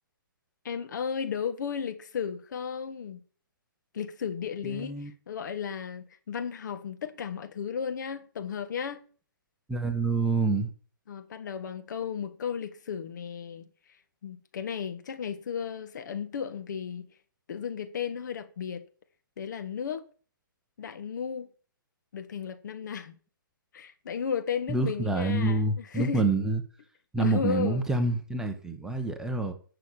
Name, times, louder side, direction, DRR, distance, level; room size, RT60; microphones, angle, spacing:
voice 1, 0.7-3.2 3.9-9.0 11.1-13.7 14.2-17.1 17.5-18.8 19.4-20.0 20.8-21.5 22.1-23.2 23.7-26.2 27.2-27.9, left 7 dB, 55° left, 1.7 m, -34 dB
voice 2, 4.6-5.1 9.7-10.7 24.7-26.6 27.1-29.5, right 3 dB, 5° right, 1.3 m, -27 dB
11.5 x 6.8 x 7.1 m
figure-of-eight pair, 135°, 12 cm